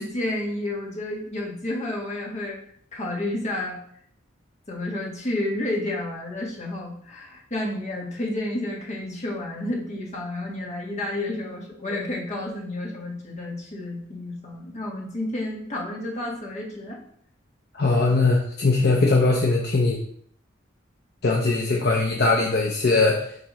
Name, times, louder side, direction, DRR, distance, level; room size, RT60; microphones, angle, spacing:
voice 1, 0.0-2.6 2.9-3.8 4.7-17.0, left 1 dB, 35° left, -2 dB, 1.6 m, -30 dB
voice 2, 17.7-20.0 21.2-23.2, left 3 dB, 55° left, -1 dB, 0.8 m, -20 dB
9.2 x 3.8 x 3.1 m, 0.64 s
head